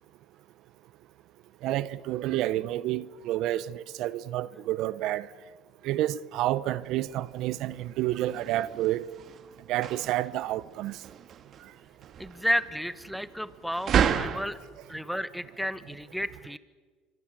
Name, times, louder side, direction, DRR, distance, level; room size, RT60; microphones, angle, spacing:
voice 1, 1.6-5.3 5.8-9.0 9.7-11.0, right 14 dB, 65° right, 0.8 m, -29 dB
sound 1, 6.8-14.4, right 8 dB, 50° right, 1.9 m, -33 dB
voice 2, 12.2-14.6 14.9-16.6, equal, ahead, 1.4 m, -32 dB
26.0 x 23.5 x 7.5 m
supercardioid pair, 100°, 0 cm